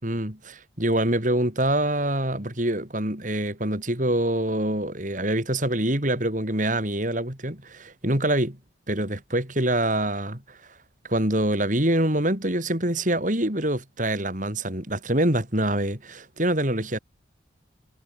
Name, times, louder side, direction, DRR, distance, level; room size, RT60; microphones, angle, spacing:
voice 1, 0.0-8.6 8.9-10.6 11.1-17.0, right 1 dB, 40° right, 4.7 m, -25 dB
head